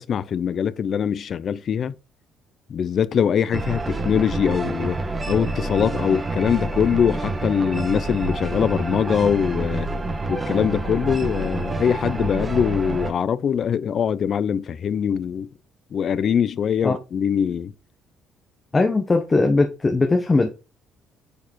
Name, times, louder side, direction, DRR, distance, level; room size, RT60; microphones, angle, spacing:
voice 1, 0.0-1.9 2.7-5.0 5.3-9.9 10.3-15.5 15.9-17.7, left 8 dB, 50° left, 0.6 m, -22 dB
sound 1, 3.5-13.1, right 2 dB, 20° right, 1.4 m, -27 dB
voice 2, 18.7-20.5, left 3 dB, 20° left, 1.0 m, -19 dB
9.8 x 4.8 x 4.5 m
cardioid pair, 115°, 0 cm